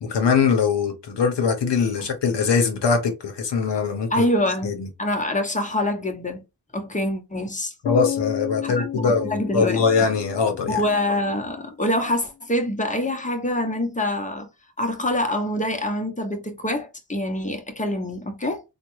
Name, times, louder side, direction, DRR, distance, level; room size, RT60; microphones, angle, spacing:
voice 1, 0.0-4.3 4.6-4.9 7.8-10.8, left 5 dB, 65° left, 0.9 m, -22 dB
voice 2, 4.1-4.7 5.0-6.4 6.7-7.7 8.6-10.1 10.7-14.5 14.8-18.6, left 1 dB, 15° left, 0.8 m, -25 dB
sound 1, 7.9-11.8, left 10 dB, 35° left, 0.4 m, -32 dB
3.6 x 2.2 x 3.1 m
cardioid pair, 75°, 45 cm